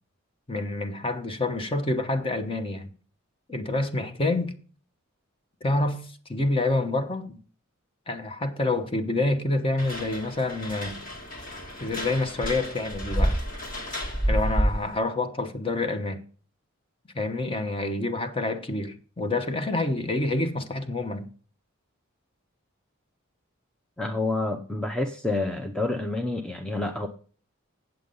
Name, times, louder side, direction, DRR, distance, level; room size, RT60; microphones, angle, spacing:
voice 1, 0.5-2.9 3.5-4.6 5.6-7.4 8.1-11.0 11.8-13.4 14.3-16.2 17.1-21.3, left 2 dB, 25° left, 0.9 m, -27 dB
sound 1, 9.8-15.0, equal, 45° left, 1.9 m, -29 dB
voice 2, 24.0-27.1, left 2 dB, 5° left, 0.6 m, -28 dB
8.1 x 7.8 x 5.3 m
head